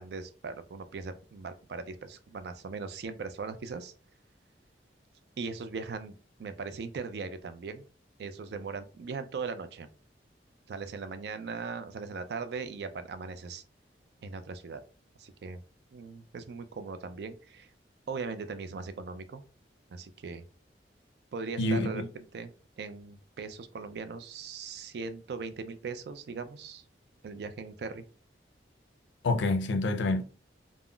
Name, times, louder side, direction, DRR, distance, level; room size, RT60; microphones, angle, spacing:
voice 1, 0.0-3.9 5.4-6.1 6.4-7.8 8.2-9.9 10.7-13.6 14.2-14.8 15.2-15.6 15.9-17.7 18.1-19.4 19.9-20.4 21.3-26.8 27.2-28.1, right 4 dB, 65° right, 0.3 m, -39 dB
voice 2, 21.6-22.1 29.2-30.2, left 2 dB, 90° left, 0.4 m, -27 dB
3.6 x 2.0 x 2.2 m
head